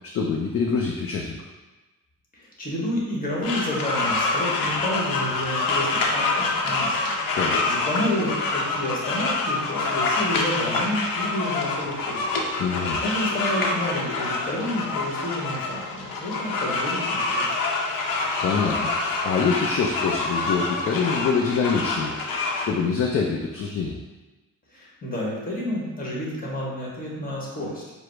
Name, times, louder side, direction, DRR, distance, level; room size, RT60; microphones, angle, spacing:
voice 1, 0.1-1.4 7.3-7.6 12.6-13.0 18.4-24.0, left 5 dB, 45° left, 0 dB, 0.4 m, -25 dB
voice 2, 2.3-7.4 7.7-12.3 13.0-17.6 24.7-27.8, left 1 dB, 25° left, -4 dB, 1.2 m, -30 dB
sound 1, 3.4-22.6, left 3 dB, 90° left, 0.7 m, -26 dB
4.9 x 2.0 x 4.5 m, 1.1 s
cardioid pair, 140°, 33 cm